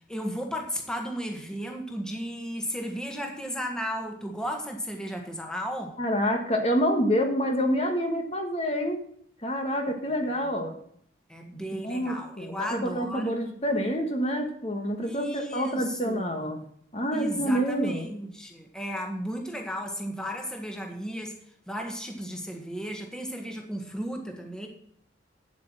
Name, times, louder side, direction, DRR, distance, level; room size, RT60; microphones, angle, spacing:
voice 1, 0.1-6.0 11.3-13.4 15.0-16.5 17.1-21.4 21.7-24.7, equal, 5° left, 2 dB, 1.7 m, -34 dB
voice 2, 6.0-9.0 9.4-10.7 11.8-16.6 16.9-18.1, equal, 30° left, 3 dB, 1.4 m, -27 dB
9.0 x 8.2 x 7.4 m, 0.65 s
head